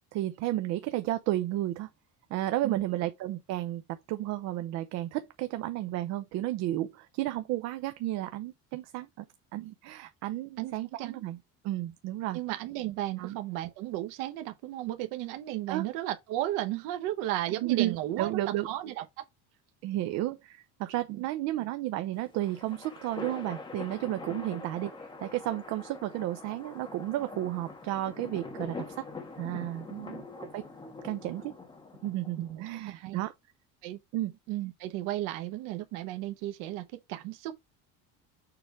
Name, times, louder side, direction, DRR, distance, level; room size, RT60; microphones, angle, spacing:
voice 1, 0.1-1.9 2.3-9.3 9.5-11.4 11.6-12.4 13.2-13.4 15.7-15.8 17.6-18.7 19.8-29.0 29.4-29.9 30.4-30.6 31.0-31.5 32.0-33.3 34.1-34.3, right 15 dB, 55° right, 0.7 m, -32 dB
voice 2, 12.3-19.2 21.1-21.2 29.9-30.2 32.5-33.2 33.8-34.0 34.5-37.5, right 14 dB, 80° right, 1.0 m, -34 dB
sound 1, 22.1-32.6, left 3 dB, 15° left, 1.4 m, -44 dB
6.9 x 3.4 x 4.6 m
cardioid pair, 175°, 31 cm